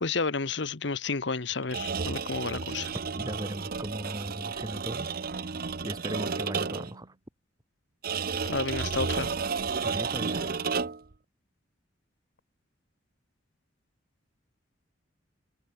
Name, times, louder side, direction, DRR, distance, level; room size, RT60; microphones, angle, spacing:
voice 1, 0.0-2.9 8.5-9.3, left 4 dB, 65° left, 1.1 m, -31 dB
sound 1, 1.6-7.0 8.0-11.1, right 5 dB, 50° right, 0.8 m, -32 dB
voice 2, 3.2-5.1 5.8-7.1 9.8-10.7, equal, 20° right, 2.9 m, -37 dB
head